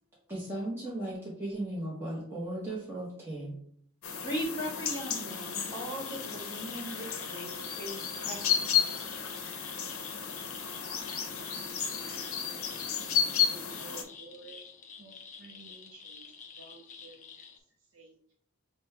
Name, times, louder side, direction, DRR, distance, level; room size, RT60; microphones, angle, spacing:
voice 1, 0.3-3.6, right 1 dB, 10° right, -7 dB, 0.8 m, -36 dB
sound 1, 4.0-14.0, left 8 dB, 75° left, 0.7 m, -33 dB
voice 2, 4.2-8.8, equal, 20° left, -2 dB, 1.2 m, -38 dB
sound 2, 4.9-17.6, left 6 dB, 35° left, 0.4 m, -49 dB
voice 3, 12.2-12.9 13.3-14.6 15.0-18.3, right 3 dB, 55° right, 0 dB, 0.5 m, -53 dB
6.2 x 2.2 x 3.3 m, 0.66 s
head